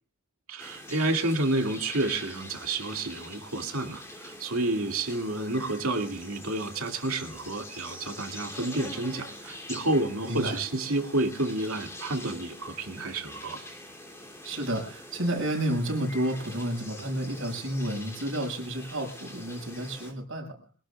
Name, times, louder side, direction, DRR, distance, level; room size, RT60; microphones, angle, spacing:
voice 1, 0.5-13.6, right 2 dB, 85° right, 3 dB, 2.3 m, -30 dB
sound 1, 0.6-20.1, left 1 dB, 15° left, 2.8 m, -44 dB
voice 2, 10.2-10.6 14.4-20.6, right 1 dB, 65° right, 2 dB, 6.1 m, -31 dB
25.0 x 18.0 x 2.4 m, 0.39 s
head